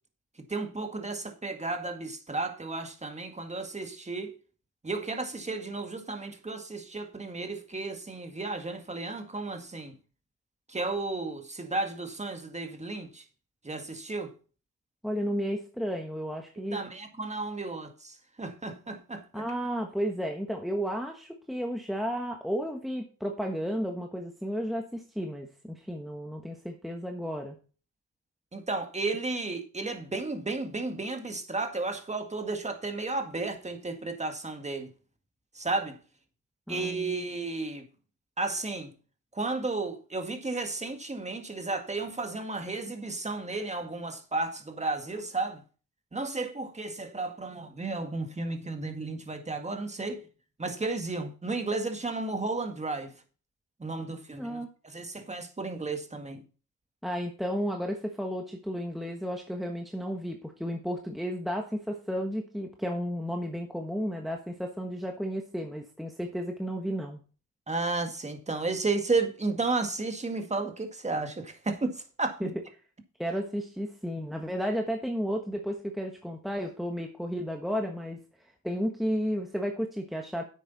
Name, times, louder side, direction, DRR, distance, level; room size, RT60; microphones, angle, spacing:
voice 1, 0.5-4.3 4.8-9.9 10.7-13.2 13.6-14.3 16.6-19.4 28.5-34.9 35.6-36.0 36.7-37.9 38.4-38.9 39.3-45.6 46.1-50.2 50.6-53.1 53.8-56.4 67.7-72.5, right 3 dB, 20° right, 1.8 m, -33 dB
voice 2, 15.0-16.8 19.3-27.6 36.7-37.2 54.4-54.7 57.0-67.2 72.4-72.5 73.2-78.2 78.6-80.4, equal, ahead, 1.3 m, -33 dB
10.0 x 8.1 x 4.1 m
cardioid pair, 95°, 34 cm